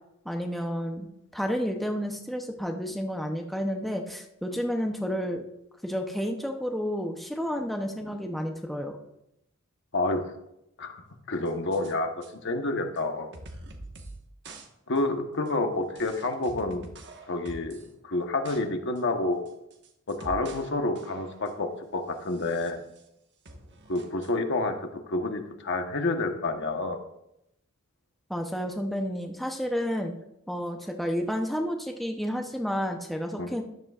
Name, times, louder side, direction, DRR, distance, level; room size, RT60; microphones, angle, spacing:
voice 1, 0.2-1.1 1.3-5.4 5.8-9.0 28.3-30.1 30.5-33.6, equal, ahead, 2 dB, 0.7 m, -31 dB
voice 2, 11.3-13.3 14.9-16.9 17.3-17.8 18.0-19.4 20.1-22.8 23.9-27.0 33.4-33.5, left 2 dB, 60° left, 5 dB, 1.1 m, -29 dB
sound 1, 11.5-11.9 12.2-12.3 13.0-13.1 13.3-14.2 14.4-14.7 15.0-15.1 15.5-15.6 16.0-17.9 18.2-18.6 19.0-19.1 19.5-20.7 21.0-21.6 22.2-23.1 23.5-24.3, right 2 dB, 55° right, 1.3 m, -45 dB
13.5 x 10.5 x 2.4 m, 0.84 s
head